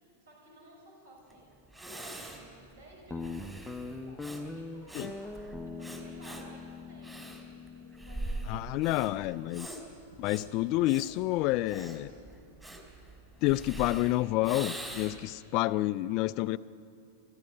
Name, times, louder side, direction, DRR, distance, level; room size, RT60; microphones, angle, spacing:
voice 1, 0.0-1.5 1.9-2.4 2.7-5.4 5.6-7.2 7.7-8.6 8.9-9.1, right 1 dB, 65° right, -2 dB, 5.8 m, -55 dB
Breathing, 1.3-1.4 1.7-15.4, right 1 dB, 10° right, 3.4 m, -43 dB
Guitar, 3.1-9.8, left 3 dB, 5° left, 0.8 m, -43 dB
voice 2, 8.5-9.7 10.2-12.1 13.4-16.6, left 17 dB, 45° left, 14 dB, 0.4 m, -29 dB
26.0 x 15.5 x 6.7 m, 2.7 s
figure-of-eight pair, 95°, 0 cm